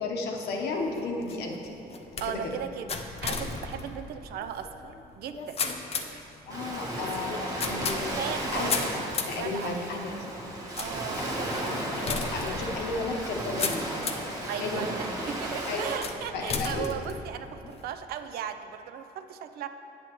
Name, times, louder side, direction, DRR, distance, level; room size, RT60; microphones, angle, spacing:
voice 1, 0.0-1.8 2.1-2.6 6.1-6.2 6.5-8.7 9.3-10.1 11.2-11.3 11.7-13.9 14.6-14.9 15.7-15.9 16.3-16.9, left 3 dB, 75° left, 1 dB, 0.9 m, -34 dB
sound 1, 0.8-14.4 14.9-15.4 16.0-17.8, left 5 dB, 35° left, 0.5 m, -36 dB
voice 2, 2.2-5.6 6.0-6.4 8.2-9.8 10.8-11.9 14.5-19.7, right 9 dB, 65° right, 9 dB, 0.4 m, -37 dB
Ocean, 6.5-16.0, right 1 dB, 20° right, 1.2 m, -34 dB
8.7 x 6.8 x 3.0 m, 2.9 s
cardioid pair, 110°, 17 cm